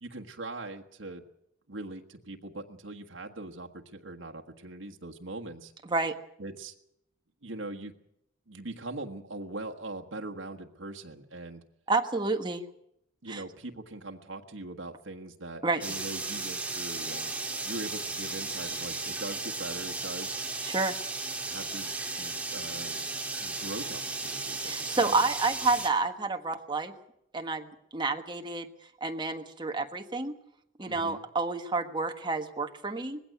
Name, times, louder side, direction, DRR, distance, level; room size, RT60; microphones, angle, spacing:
voice 1, 0.0-1.2 1.7-5.7 6.4-6.7 7.4-7.9 8.5-11.6 13.2-17.3 17.6-20.4 21.5-23.0 23.4-25.2 30.9-31.2, right 2 dB, 70° right, 3 dB, 1.5 m, -41 dB
voice 2, 11.9-12.6 13.3-13.4 15.6-15.8 20.6-20.9 24.6-26.9 27.3-28.7 29.0-30.3 30.8-33.2, right 3 dB, 25° right, 5 dB, 1.4 m, -29 dB
sound 1, 15.8-25.9, right 3 dB, 5° right, 1.8 m, -35 dB
20.0 x 16.0 x 8.3 m, 0.78 s
head